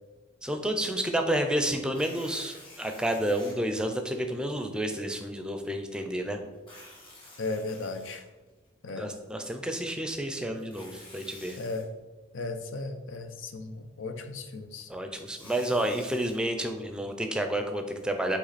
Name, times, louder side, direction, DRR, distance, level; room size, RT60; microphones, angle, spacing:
voice 1, 0.4-6.4 8.9-11.6 14.9-18.4, right 1 dB, 5° right, 5 dB, 0.5 m, -30 dB
Tearing, 1.8-3.5 4.2-4.3 6.5-8.7 10.5-11.8 15.0-16.4, left 2 dB, 25° left, 1.7 m, -50 dB
voice 2, 7.4-8.2 8.8-9.1 11.6-11.9 12.3-14.9 15.4-15.5, left 3 dB, 90° left, 8 dB, 0.6 m, -36 dB
8.1 x 3.1 x 4.1 m, 1.2 s
head